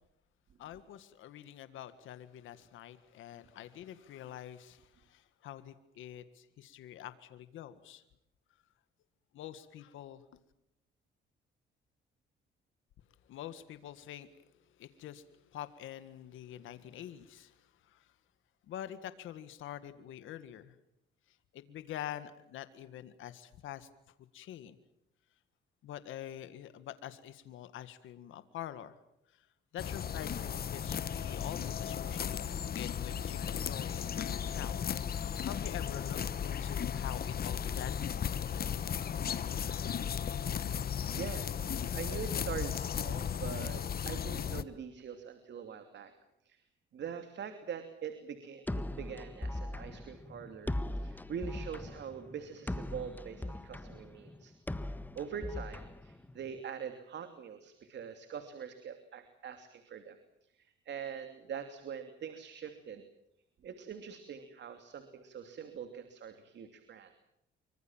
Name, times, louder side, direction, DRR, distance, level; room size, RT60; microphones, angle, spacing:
voice 1, 0.6-8.0 9.3-10.2 13.3-14.3 14.8-18.1 18.7-20.8 21.3-23.9 24.3-24.8 25.8-28.9 29.3-29.5 29.7-32.4 32.7-34.8 35.1-38.0, left 11 dB, 85° left, 11 dB, 1.8 m, -46 dB
sound 1, 29.8-44.6, left 8 dB, 50° left, 1.2 m, -35 dB
voice 2, 40.7-46.1 46.4-46.6 46.9-54.5 55.1-63.0 63.6-67.1, right 7 dB, 60° right, 7 dB, 2.8 m, -44 dB
sound 2, 48.7-56.6, left 1 dB, 10° left, 1.5 m, -40 dB
26.0 x 24.5 x 7.4 m, 0.80 s
cardioid pair, 90°, 20 cm